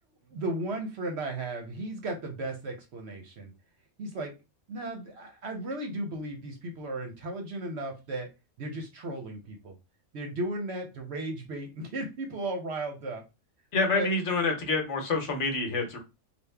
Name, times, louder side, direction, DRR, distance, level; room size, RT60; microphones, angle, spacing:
voice 1, 0.3-3.5 4.0-4.4 4.7-8.3 8.6-9.7 10.1-13.2 13.9-14.1, right 2 dB, 60° right, 4 dB, 0.8 m, -35 dB
voice 2, 13.7-16.0, left 3 dB, 60° left, 3 dB, 1.1 m, -27 dB
3.3 x 2.4 x 3.4 m, 0.26 s
omnidirectional pair, 1.5 m